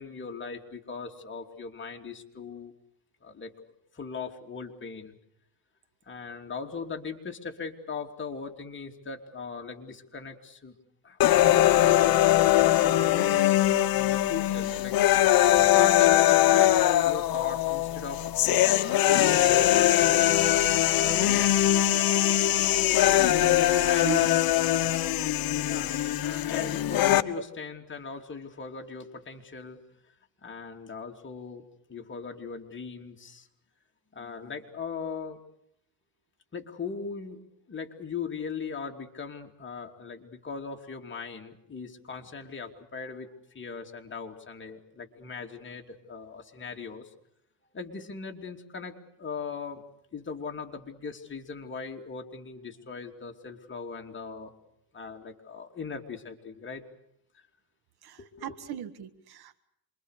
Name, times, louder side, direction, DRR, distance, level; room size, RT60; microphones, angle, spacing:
voice 1, 0.0-2.7 3.2-5.2 6.1-10.7 11.0-12.2 12.6-13.7 13.9-14.9 15.5-16.8 17.0-20.5 20.9-21.8 23.4-24.4 25.7-25.9 26.2-29.8 30.4-31.6 31.9-33.5 34.1-35.4 36.5-37.4 37.7-47.1 47.7-49.8 50.1-54.5 54.9-56.8 57.3-57.4 58.2-58.5, left 5 dB, 25° left, 2 dB, 3.1 m, -39 dB
sound 1, 11.2-27.2, left 13 dB, 45° left, 1.3 m, -22 dB
voice 2, 23.7-24.3 26.0-26.2 27.3-27.4 58.0-59.6, right 9 dB, 50° right, 12 dB, 1.8 m, -37 dB
27.5 x 23.5 x 6.7 m, 0.75 s
supercardioid pair, 105°, 48 cm